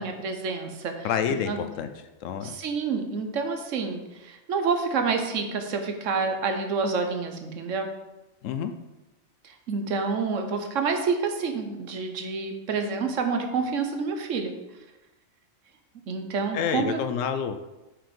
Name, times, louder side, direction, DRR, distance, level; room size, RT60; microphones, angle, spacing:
voice 1, 0.0-1.1 1.5-1.6 2.4-7.9 9.4-14.5 16.1-17.0, right 5 dB, 70° right, 5 dB, 1.1 m, -28 dB
voice 2, 1.0-1.9 2.2-2.5 8.4-8.7 16.5-17.6, left 7 dB, 75° left, 9 dB, 0.9 m, -28 dB
5.9 x 5.0 x 5.2 m, 1.1 s
omnidirectional pair, 1.4 m